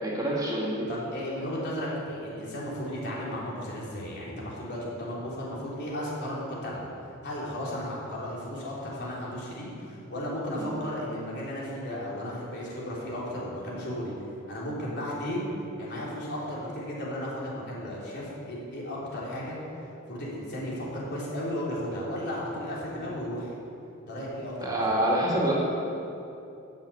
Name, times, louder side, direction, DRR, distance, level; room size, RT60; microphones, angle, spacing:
voice 1, 0.0-0.9 10.5-10.7 24.6-25.5, right 1 dB, 20° right, -5 dB, 2.5 m, -26 dB
voice 2, 0.9-6.9 7.2-14.1 14.5-15.5 15.8-19.6 20.1-23.5 24.1-24.9, equal, 55° left, -5 dB, 3.5 m, -34 dB
13.0 x 6.5 x 8.7 m, 2.8 s
head